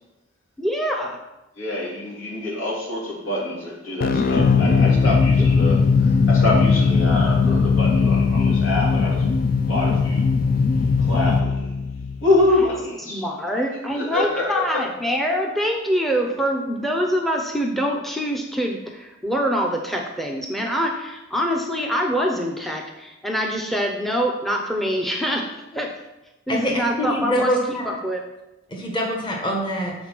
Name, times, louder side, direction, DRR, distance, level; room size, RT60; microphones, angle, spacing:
voice 1, 0.6-1.2 5.4-5.5 13.1-25.9 26.5-27.8 28.0-28.2, equal, ahead, 2 dB, 0.6 m, -25 dB
voice 2, 1.6-9.3 9.7-10.2 11.0-11.7 12.2-13.3 13.9-14.8, left 2 dB, 80° left, -4 dB, 2.7 m, -25 dB
sound 1, 4.0-12.7, left 5 dB, 45° left, 0.3 m, -19 dB
voice 3, 26.5-27.9 28.7-29.9, equal, 25° left, -1 dB, 1.1 m, -24 dB
7.7 x 4.4 x 5.9 m, 0.98 s
head